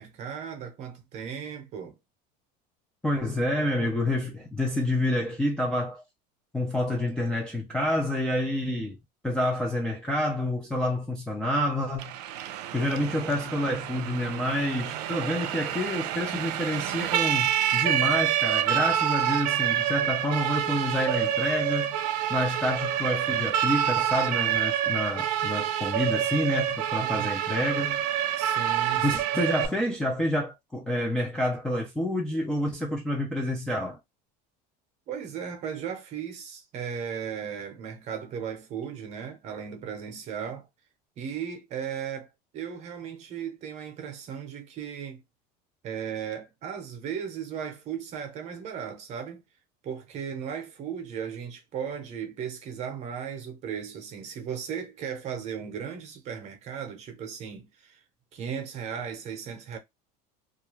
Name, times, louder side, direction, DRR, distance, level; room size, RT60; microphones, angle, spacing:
voice 1, 0.0-2.0 27.0-27.7 28.4-29.2 35.1-40.7 41.2-45.2 45.8-49.4 49.8-58.0 58.3-59.8, right 7 dB, 35° right, 0.7 m, -36 dB
voice 2, 3.0-6.0 6.5-9.0 9.2-12.1 12.7-22.0 22.3-28.0 29.0-34.0, left 1 dB, 5° left, 0.3 m, -28 dB
Siren, 12.0-29.7, right 11 dB, 85° right, 0.5 m, -27 dB
2.4 x 2.2 x 2.9 m
cardioid pair, 165°, 20 cm